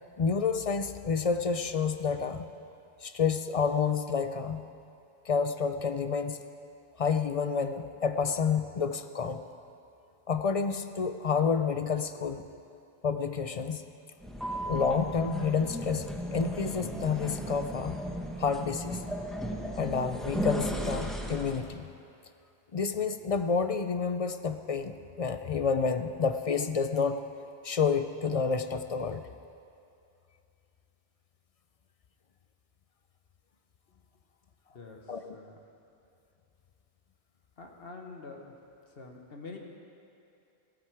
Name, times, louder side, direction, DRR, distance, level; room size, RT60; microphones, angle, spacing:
voice 1, 0.2-2.5 3.0-4.6 5.3-6.4 7.0-9.4 10.3-12.5 13.0-13.8 14.7-18.0 18.4-19.0 19.8-21.9 22.7-27.2 27.6-29.2 35.1-35.4, left 5 dB, 50° left, 9 dB, 0.5 m, -29 dB
sound 1, 14.2-21.7, equal, ahead, 0.9 m, -35 dB
voice 2, 37.6-38.4 39.0-39.6, left 3 dB, 70° left, 1 dB, 1.5 m, -45 dB
15.5 x 12.5 x 4.7 m, 2.7 s
omnidirectional pair, 1.0 m